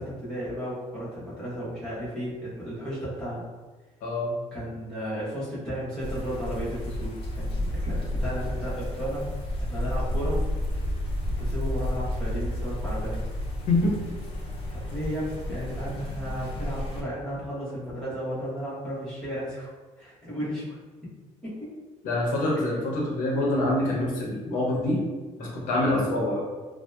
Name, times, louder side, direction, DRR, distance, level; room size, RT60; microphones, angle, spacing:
voice 1, 0.0-3.5 4.5-9.2 9.6-10.4 11.4-13.2 14.7-19.7 20.0-20.8 21.4-21.7, equal, 5° left, -11 dB, 0.8 m, -34 dB
voice 2, 4.0-4.3 13.7-14.0 22.0-25.0 25.4-26.4, left 1 dB, 85° left, -3 dB, 0.7 m, -25 dB
sound 1, 6.0-17.0, left 1 dB, 45° left, 0.4 m, -31 dB
2.8 x 2.0 x 2.2 m, 1.3 s
cardioid pair, 175°, 13 cm